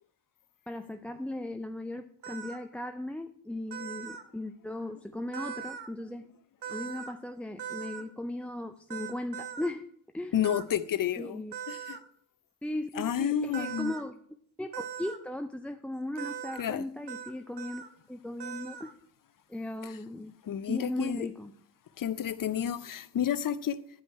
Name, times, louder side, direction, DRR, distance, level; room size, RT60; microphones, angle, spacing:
voice 1, 0.7-6.2 6.7-9.9 10.1-10.3 11.2-11.5 12.6-14.2 14.6-19.0 19.5-20.3 20.7-21.5, left 1 dB, 5° left, 0.3 m, -37 dB
sound 1, 2.2-2.6 3.7-4.2 5.3-5.9 6.6-7.1 7.6-8.0 8.9-9.7 10.4-10.6 11.5-12.0 13.5-14.0 14.7-15.2 16.2-16.6 17.1-17.3 17.6-17.9 18.4-18.9, right 8 dB, 65° right, 1.0 m, -40 dB
voice 2, 10.3-12.0 12.9-14.0 16.6-16.9 19.8-20.0 20.4-21.3 22.0-23.8, left 9 dB, 50° left, 0.6 m, -31 dB
10.0 x 5.2 x 4.5 m
supercardioid pair, 45°, 44 cm